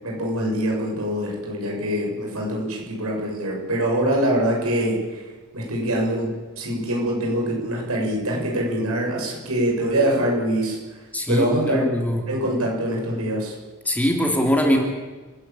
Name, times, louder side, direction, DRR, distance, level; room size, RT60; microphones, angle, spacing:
voice 1, 0.0-5.3 5.5-6.3 6.6-11.0 11.3-11.9 12.3-13.5, right 1 dB, 75° right, -2 dB, 6.9 m, -24 dB
voice 2, 11.1-12.2 13.8-14.8, equal, 5° left, 1 dB, 3.0 m, -22 dB
29.5 x 11.5 x 8.9 m, 1.3 s
head